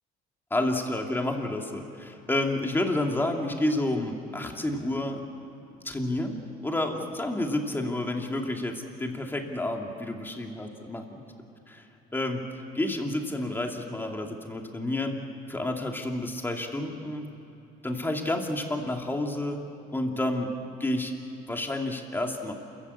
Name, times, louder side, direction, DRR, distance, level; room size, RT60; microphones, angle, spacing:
voice 1, 0.5-5.2 5.8-11.2 11.8-11.9 12.1-15.1 15.5-17.3 17.8-19.6 19.9-20.5 20.8-21.1 21.5-22.5, left 1 dB, 10° left, 2 dB, 2.6 m, -30 dB
28.0 x 15.0 x 8.6 m, 2.9 s
cardioid pair, 110°, 17 cm